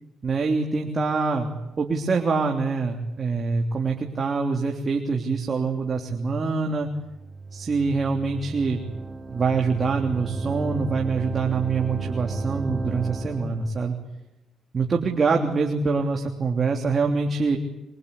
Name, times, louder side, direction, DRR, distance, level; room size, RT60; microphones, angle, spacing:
voice 1, 0.2-6.9 7.5-8.8 9.3-14.0 14.7-17.6, right 4 dB, 35° right, 2 dB, 3.2 m, -25 dB
sound 1, 6.9-13.7, right 4 dB, 20° right, 2.5 m, -33 dB
24.5 x 24.0 x 8.5 m, 0.95 s
cardioid pair, 90°, 0 cm